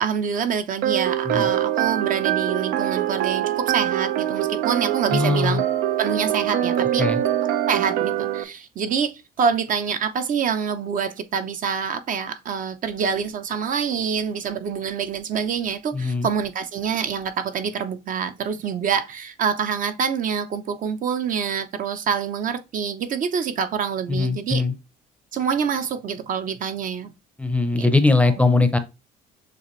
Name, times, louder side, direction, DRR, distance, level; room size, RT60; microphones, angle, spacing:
voice 1, 0.0-5.6 6.0-7.1 7.7-24.6 25.3-27.1 27.8-27.9 28.2-28.3, right 7 dB, 50° right, 0.7 m, -26 dB
sound 1, 0.8-8.4, right 12 dB, 90° right, 0.6 m, -24 dB
voice 2, 5.1-5.6 7.0-7.2 15.9-16.3 24.1-24.7 27.4-28.8, left 3 dB, 10° left, 0.6 m, -20 dB
6.9 x 2.5 x 3.1 m
cardioid pair, 110°, 17 cm